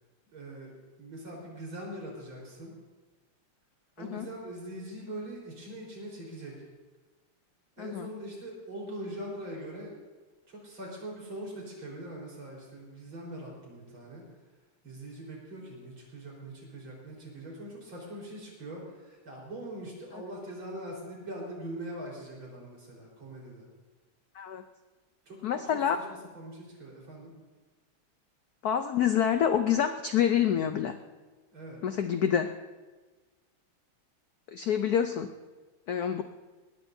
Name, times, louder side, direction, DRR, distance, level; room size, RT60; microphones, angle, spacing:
voice 1, 0.3-0.7 1.0-2.7 4.0-6.6 7.8-9.9 10.5-14.2 14.8-23.6 25.3-26.0 26.3-27.3 31.5-31.8, right 1 dB, 70° right, -3 dB, 5.1 m, -42 dB
voice 2, 7.8-8.1 20.1-20.2 24.3-24.6 25.4-26.0 28.6-31.0 31.8-32.5 34.5-35.3 35.9-36.2, left 9 dB, 80° left, 8 dB, 0.8 m, -27 dB
21.5 x 18.0 x 2.7 m, 1.3 s
omnidirectional pair, 2.4 m